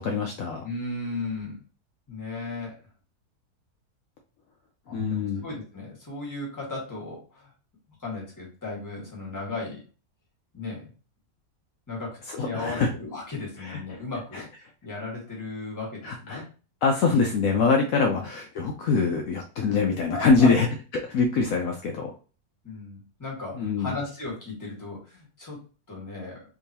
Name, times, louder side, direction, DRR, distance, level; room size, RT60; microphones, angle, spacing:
voice 1, 0.0-0.6 4.9-5.5 12.3-12.9 13.6-14.0 14.3-14.4 16.0-16.4 16.8-20.7 20.9-22.1 23.5-23.9, left 4 dB, 70° left, 2 dB, 1.0 m, -24 dB
voice 2, 0.6-1.6 2.1-2.7 4.9-7.5 8.0-9.8 10.5-10.9 11.9-14.5 14.8-16.5 18.1-18.2 19.5-19.8 20.1-20.5 22.6-26.4, left 3 dB, 15° left, -4 dB, 1.4 m, -36 dB
3.5 x 2.9 x 2.8 m, 0.35 s
omnidirectional pair, 1.6 m